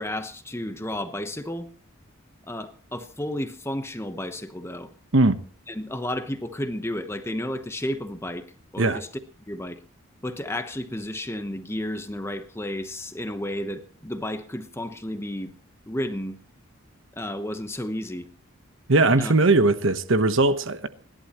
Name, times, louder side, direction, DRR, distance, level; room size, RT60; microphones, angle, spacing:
voice 1, 0.0-1.7 2.5-4.9 5.7-8.5 8.7-9.1 9.5-9.8 10.2-15.5 15.9-16.4 17.2-18.3 19.2-19.3, left 1 dB, 10° left, 1.0 m, -32 dB
voice 2, 18.9-20.9, right 2 dB, 60° right, 1.0 m, -19 dB
29.0 x 11.5 x 3.0 m
head